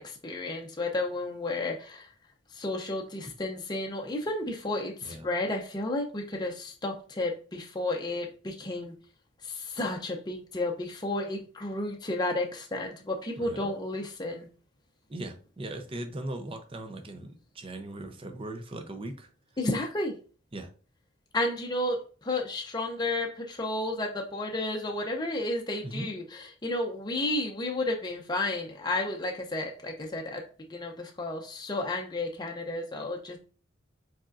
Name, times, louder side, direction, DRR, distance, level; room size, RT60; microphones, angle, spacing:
voice 1, 0.0-2.1 2.5-8.9 9.4-14.5 19.6-20.2 21.3-30.4 30.7-33.4, left 2 dB, 20° left, 1 dB, 0.6 m, -32 dB
voice 2, 15.1-19.3 20.5-20.7 25.8-26.1, right 1 dB, 25° right, 7 dB, 0.6 m, -39 dB
4.9 x 4.2 x 2.5 m, 0.38 s
head